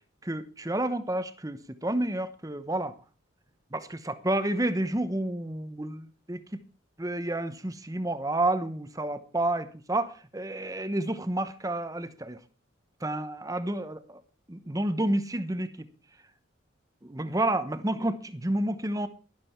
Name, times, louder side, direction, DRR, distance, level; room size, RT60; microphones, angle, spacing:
voice 1, 0.2-2.9 3.7-6.4 7.0-12.4 13.0-14.2 14.5-15.9 17.0-19.1, right 1 dB, 15° right, 12 dB, 0.9 m, -30 dB
12.0 x 12.0 x 4.5 m, 0.36 s
head